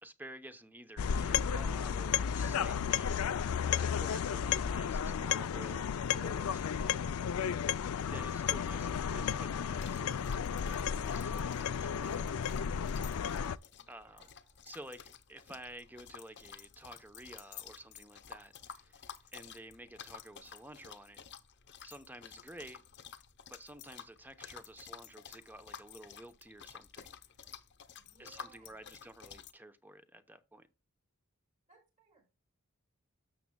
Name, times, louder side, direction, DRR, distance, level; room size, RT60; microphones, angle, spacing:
voice 1, 0.0-3.2 3.7-7.0 8.1-10.2 10.6-12.5 13.9-14.3 14.6-21.2 21.8-22.8 23.5-27.2 28.2-30.7, right 1 dB, 10° right, 0.8 m, -51 dB
sound 1, 1.0-13.6, left 7 dB, 90° left, 0.4 m, -33 dB
sound 2, 9.8-29.5, left 8 dB, 55° left, 0.9 m, -52 dB
voice 2, 13.7-14.6 27.9-29.0 31.7-32.3, right 4 dB, 35° right, 5.1 m, -65 dB
12.5 x 7.0 x 2.2 m
head